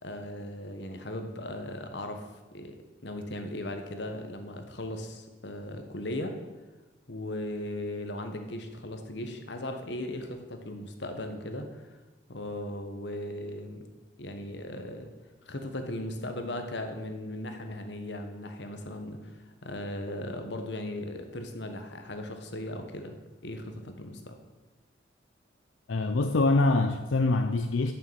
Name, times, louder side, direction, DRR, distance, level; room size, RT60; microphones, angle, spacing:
voice 1, 0.0-2.2 2.5-2.8 3.0-6.4 7.1-11.9 12.3-13.8 14.2-15.1 15.5-19.3 19.6-24.4, left 1 dB, 65° left, 6 dB, 1.2 m, -37 dB
voice 2, 25.9-27.9, left 2 dB, 90° left, 7 dB, 0.6 m, -24 dB
9.5 x 6.8 x 7.4 m, 1.2 s
head